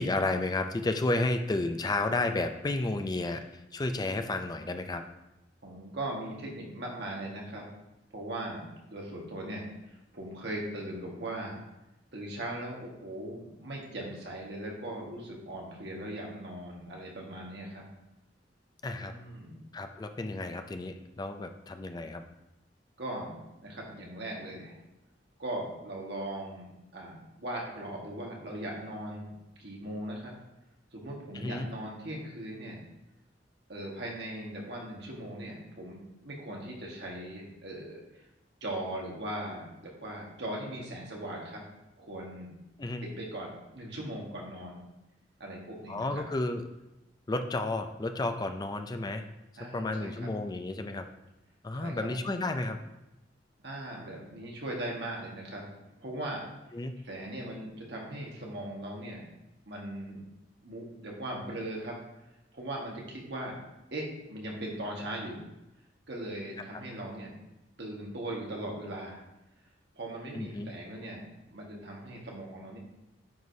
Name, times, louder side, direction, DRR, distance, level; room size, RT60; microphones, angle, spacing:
voice 1, 0.0-3.5 3.7-5.0 18.8-19.1 19.7-22.2 31.3-31.7 42.8-43.0 45.9-46.6 47.3-49.3 49.7-51.1 51.6-52.8 56.7-57.0 70.3-70.7, left 2 dB, 20° left, 7 dB, 0.4 m, -32 dB
voice 2, 5.6-7.7 8.1-9.6 10.1-11.6 12.1-17.8 19.0-19.6 23.0-24.8 25.4-30.3 30.9-32.8 33.7-38.0 38.6-41.6 42.0-42.5 43.0-44.8 45.4-46.2 49.6-50.3 51.8-52.1 53.6-55.7 56.0-56.5 57.0-59.2 59.7-60.2 60.6-62.0 62.5-63.6 63.9-65.4 66.1-67.3 67.8-69.2 69.9-71.2 71.5-72.8, right 1 dB, 65° right, -2 dB, 1.6 m, -39 dB
9.2 x 4.7 x 2.7 m, 0.93 s
head